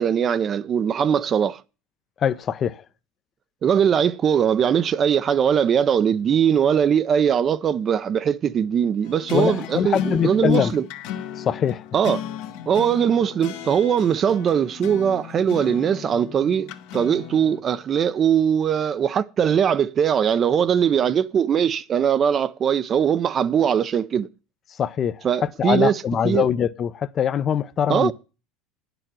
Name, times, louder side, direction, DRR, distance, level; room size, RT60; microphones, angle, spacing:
voice 1, 0.0-1.6 3.6-10.8 11.9-12.2 12.7-24.3 25.2-26.5 27.9-28.1, right 8 dB, 35° right, 0.6 m, -21 dB
voice 2, 2.2-2.8 9.3-10.7 11.3-11.8 24.7-28.1, left 8 dB, 35° left, 0.7 m, -23 dB
sound 1, 9.0-17.6, left 9 dB, 65° left, 1.3 m, -34 dB
9.7 x 6.9 x 7.5 m
supercardioid pair, 120°, 0 cm